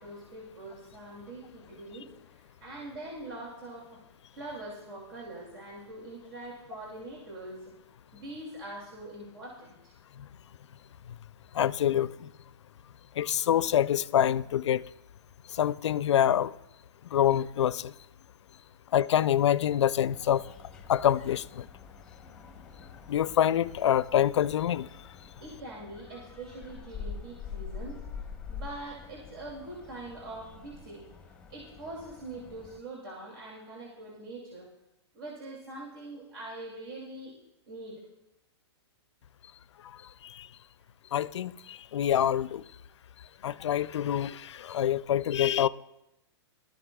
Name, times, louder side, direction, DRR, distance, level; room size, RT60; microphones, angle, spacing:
voice 1, 0.0-4.0 4.3-7.7 8.1-9.9 25.4-28.0 28.5-31.1 31.5-34.7 35.1-37.3 37.7-38.0, right 2 dB, 60° right, 2.5 m, -43 dB
voice 2, 11.5-12.3 13.2-14.8 15.5-16.5 17.1-17.9 18.9-20.4 20.9-21.6 23.1-24.9 40.2-40.5 41.1-42.6 43.4-45.7, left 10 dB, 85° left, 0.4 m, -26 dB
sound 1, 20.1-32.8, left 6 dB, 5° left, 1.0 m, -46 dB
19.0 x 13.0 x 2.3 m
hypercardioid pair, 150°, 14 cm